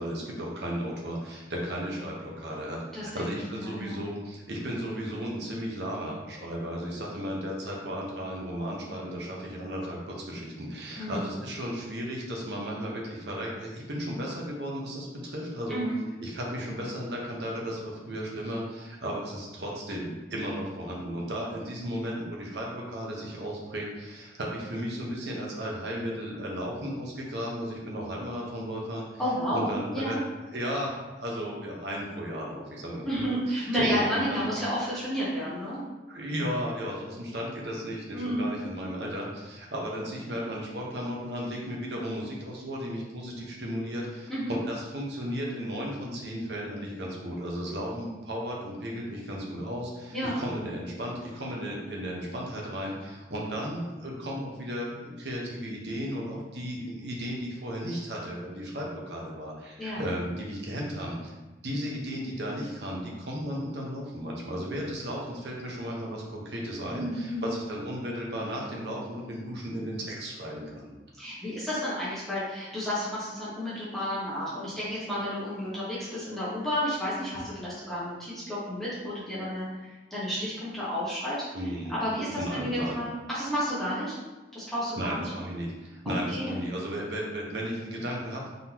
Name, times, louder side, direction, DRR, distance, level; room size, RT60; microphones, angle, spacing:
voice 1, 0.0-15.8 16.2-29.0 29.5-30.2 30.5-34.5 36.1-61.3 61.6-70.9 81.5-81.9 82.4-83.0 85.0-88.5, equal, 70° right, -2 dB, 1.0 m, -34 dB
voice 2, 2.9-3.9 11.0-11.2 15.7-16.0 29.2-30.2 33.0-35.8 38.1-38.5 44.3-44.5 50.1-50.4 59.8-60.1 66.9-67.5 71.2-81.4 81.9-84.2 84.5-85.3 86.3-86.5, equal, ahead, -11 dB, 1.3 m, -31 dB
3.9 x 3.8 x 2.9 m, 1.1 s
head